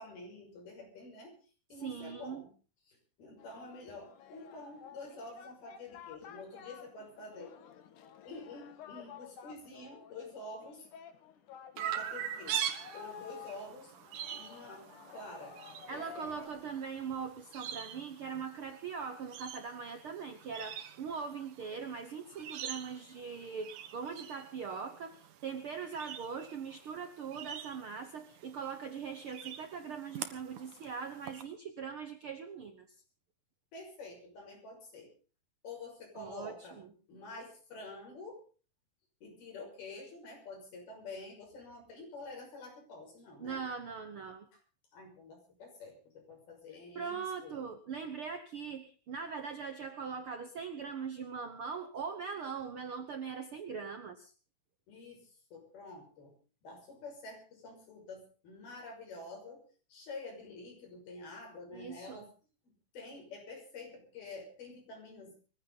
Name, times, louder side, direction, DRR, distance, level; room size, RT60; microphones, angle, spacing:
voice 1, 0.0-1.3 1.7-2.5 2.9-7.6 8.3-10.9 11.7-12.7 12.9-13.9 14.3-15.6 15.9-16.7 33.7-35.1 35.6-36.8 37.1-38.4 39.2-43.6 44.9-47.6 54.9-56.3 56.6-59.6 59.9-62.3 62.6-65.3, left 3 dB, 90° left, 1 dB, 8.0 m, -48 dB
voice 2, 1.8-2.4 15.9-32.9 36.1-36.9 43.4-44.5 46.9-54.3 61.7-62.3, right 6 dB, 80° right, 8 dB, 1.2 m, -41 dB
Singing, 3.4-16.5, left 8 dB, 65° left, 2.8 m, -53 dB
Chirp tweet, 11.8-31.4, right 9 dB, 65° right, 2.6 m, -44 dB
22.0 x 15.0 x 4.0 m, 0.37 s
omnidirectional pair, 4.2 m